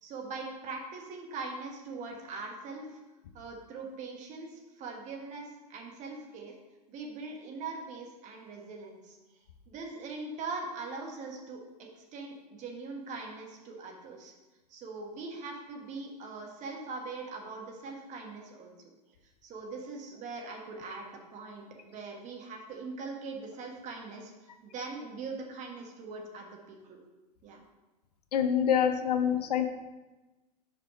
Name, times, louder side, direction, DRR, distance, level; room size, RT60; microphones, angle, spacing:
voice 1, 0.0-3.0 3.3-6.5 6.9-9.2 9.7-11.6 11.9-14.3 14.7-18.7 19.4-24.3 24.6-27.0 27.4-27.6, right 3 dB, 35° right, 1 dB, 1.5 m, -41 dB
voice 2, 28.3-29.7, left 8 dB, 70° left, 9 dB, 0.7 m, -26 dB
5.4 x 5.1 x 5.0 m, 1.1 s
hypercardioid pair, 100°, 21 cm